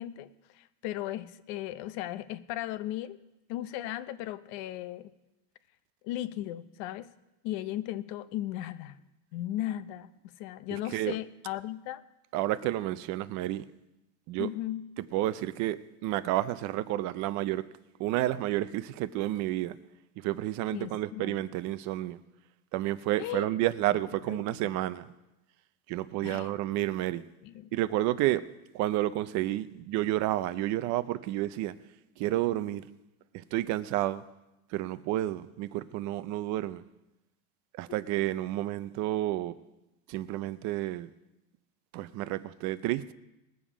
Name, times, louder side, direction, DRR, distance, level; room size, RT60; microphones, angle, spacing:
voice 1, 0.0-3.2 3.5-5.1 6.0-7.1 7.4-9.0 9.3-12.0 14.4-14.9 20.7-21.5 23.2-23.5 24.3-24.7 26.2-26.5 27.4-27.7 37.9-38.0, left 14 dB, 50° left, 0.7 m, -36 dB
voice 2, 10.7-11.2 12.3-13.7 14.3-14.5 15.1-17.7 18.0-19.8 20.2-22.2 22.7-25.1 25.9-27.2 27.7-28.5 28.7-31.7 32.2-32.8 33.3-34.2 34.7-36.8 37.7-39.5 40.1-41.1 41.9-43.1, right 15 dB, 40° right, 0.5 m, -30 dB
21.0 x 7.3 x 5.0 m
supercardioid pair, 145°, 45 cm